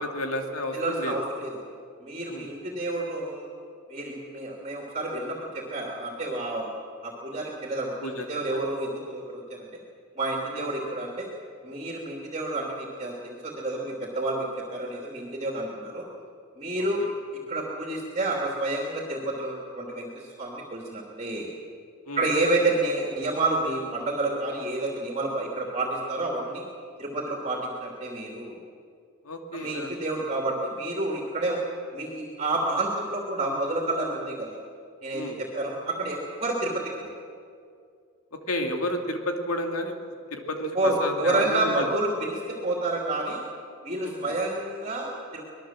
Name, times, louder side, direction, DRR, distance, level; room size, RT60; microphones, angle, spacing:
voice 1, 0.1-1.1 2.3-2.5 8.0-8.3 8.5-8.6 10.5-10.7 22.1-22.3 29.2-29.9 35.1-35.4 38.5-40.0 40.3-41.9 43.9-44.4, left 1 dB, 85° left, 4 dB, 2.6 m, -31 dB
voice 2, 0.7-1.6 2.0-3.5 3.9-6.7 7.0-9.7 10.2-11.3 11.6-16.0 16.6-17.0 17.5-21.5 22.1-26.6 27.0-28.6 29.5-31.6 31.9-34.6 35.0-37.1 40.7-43.4 43.8-45.4, right 2 dB, 30° right, -1 dB, 3.0 m, -29 dB
25.0 x 20.5 x 7.6 m, 2.3 s
head